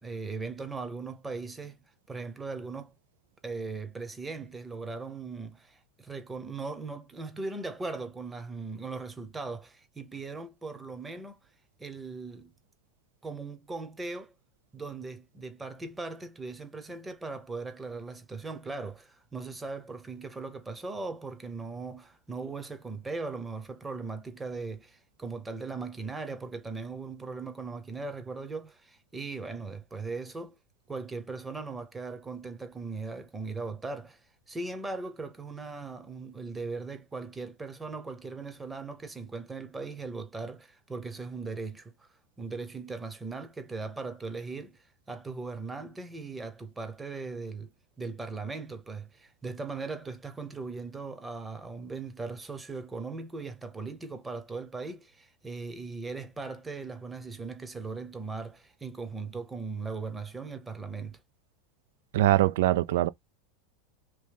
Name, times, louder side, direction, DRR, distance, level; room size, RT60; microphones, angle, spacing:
voice 1, 0.0-1.8 2.1-2.9 3.4-11.4 11.8-12.5 13.2-14.3 14.7-30.6 30.9-34.2 34.5-42.1 42.4-47.7 48.0-61.2, right 3 dB, 15° right, 0.8 m, -39 dB
voice 2, 62.1-63.1, right 15 dB, 75° right, 0.4 m, -23 dB
3.0 x 2.7 x 3.5 m
supercardioid pair, 125°, 0 cm